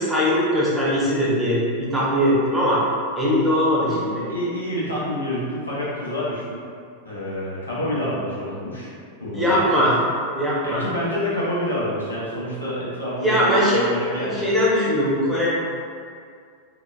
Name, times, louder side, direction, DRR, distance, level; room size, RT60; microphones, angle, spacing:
voice 1, 0.0-2.8 3.2-4.2 9.3-10.0 10.3-10.8 13.2-13.9 14.1-15.5, equal, 5° right, -8 dB, 0.7 m, -20 dB
voice 2, 3.8-6.6 7.0-8.9 9.2-9.5 9.7-9.8 10.6-14.5, equal, 80° left, -8 dB, 0.6 m, -28 dB
2.8 x 2.0 x 2.2 m, 2.2 s
figure-of-eight pair, 90°, 0 cm